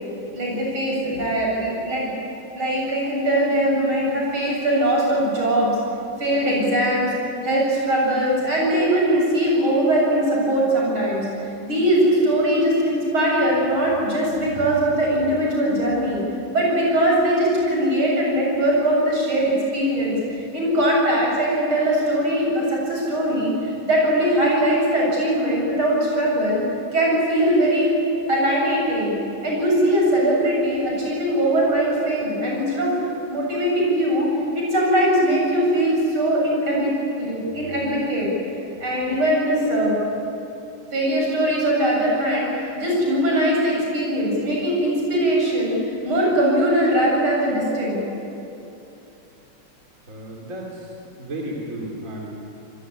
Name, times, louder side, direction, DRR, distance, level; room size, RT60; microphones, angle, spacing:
voice 1, 0.3-2.1 2.5-5.7 6.2-7.1 7.4-11.3 11.6-16.2 16.5-26.6 26.9-27.9 28.3-29.1 29.4-33.0 33.2-34.3 34.6-36.9 37.2-38.3 38.8-40.0 40.9-45.8 46.0-48.0, right 1 dB, 75° right, -3 dB, 8.9 m, -21 dB
voice 2, 50.1-52.3, right 1 dB, 35° right, -1 dB, 3.6 m, -33 dB
26.5 x 22.0 x 9.7 m, 2.9 s
omnidirectional pair, 2.3 m